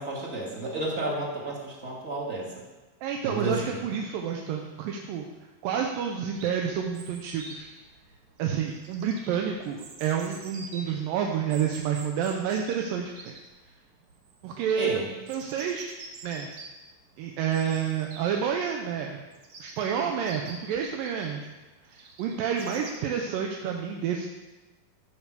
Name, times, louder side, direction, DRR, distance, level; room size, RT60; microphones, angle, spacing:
voice 1, 0.0-2.5 3.3-3.8 14.8-15.1, right 2 dB, 25° right, -2 dB, 1.9 m, -31 dB
voice 2, 3.0-5.3 5.6-7.7 8.4-13.3 14.4-15.9 16.2-16.5 17.2-19.2 19.6-21.5 21.8-24.3, right 8 dB, 75° right, 2 dB, 2.4 m, -29 dB
Chirp tweet, 6.3-23.0, right 3 dB, 60° right, 2.4 m, -47 dB
14.0 x 6.5 x 6.8 m, 1.1 s
omnidirectional pair, 4.3 m